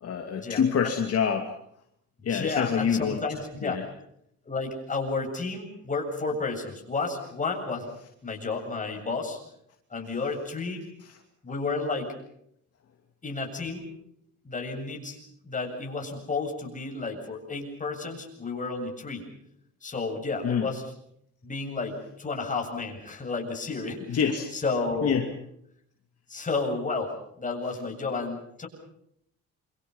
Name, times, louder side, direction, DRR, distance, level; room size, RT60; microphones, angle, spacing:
voice 1, 0.0-1.5 2.2-3.2 3.6-3.8 20.4-20.7 24.1-24.5 25.0-25.3, left 7 dB, 55° left, 3 dB, 2.7 m, -26 dB
voice 2, 2.3-3.8 4.5-7.9 8.2-9.4 9.9-10.8 11.4-12.1 13.2-13.8 14.4-15.2 15.4-19.3 19.8-20.8 21.4-24.2 24.5-25.3 26.3-28.7, left 3 dB, 25° left, 2 dB, 7.9 m, -31 dB
28.0 x 25.5 x 5.6 m, 0.73 s
cardioid pair, 115°, 29 cm